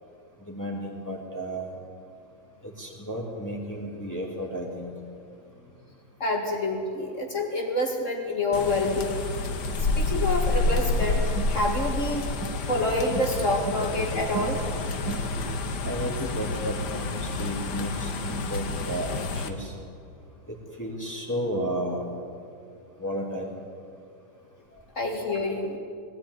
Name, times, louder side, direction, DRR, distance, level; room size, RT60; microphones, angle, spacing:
voice 1, 0.5-1.7 2.6-4.9 15.8-19.7 20.5-22.0 23.0-23.5, equal, 10° left, -2 dB, 2.6 m, -33 dB
voice 2, 6.2-9.2 9.8-11.2 11.5-12.3 12.7-14.6 24.7-25.8, left 2 dB, 50° left, 1 dB, 2.4 m, -27 dB
sound 1, 8.5-19.5, left 3 dB, 80° left, 1.8 m, -29 dB
sound 2, 11.0-12.8 13.1-15.7, right 6 dB, 80° right, 2.0 m, -38 dB
20.0 x 13.5 x 9.6 m, 2.4 s
omnidirectional pair, 1.8 m